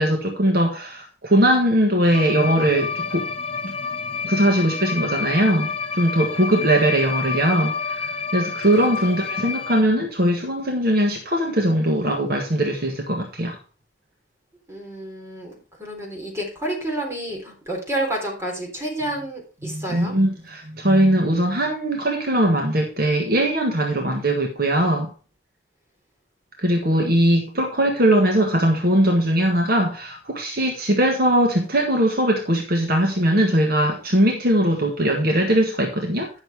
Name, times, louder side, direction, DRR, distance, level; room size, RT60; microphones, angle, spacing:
voice 1, 0.0-3.3 3.6-3.7 4.2-13.6 19.6-25.1 26.6-36.3, right 1 dB, 50° right, 1.4 m, -20 dB
sound 1, 2.1-9.8, left 5 dB, 30° left, 0.7 m, -29 dB
voice 2, 8.7-9.1 14.7-20.1, right 1 dB, 15° right, 3.7 m, -30 dB
9.6 x 6.6 x 4.8 m
head